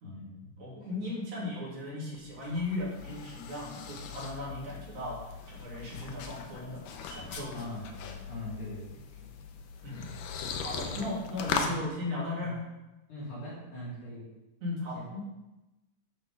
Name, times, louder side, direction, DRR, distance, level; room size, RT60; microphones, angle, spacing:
voice 1, 0.0-0.5 0.9-1.0 7.5-9.4 9.9-10.2 10.9-11.1 11.6-11.8 12.4-12.5 13.1-14.3 14.9-15.1, left 1 dB, 70° left, -9 dB, 5.4 m, -42 dB
voice 2, 0.6-7.6 9.8-10.1 10.6-12.6 14.6-15.3, left 2 dB, 60° right, -7 dB, 4.3 m, -37 dB
sound 1, 2.1-11.8, left 6 dB, 90° left, 2.4 m, -39 dB
11.5 x 6.5 x 3.7 m, 1.0 s
omnidirectional pair, 3.7 m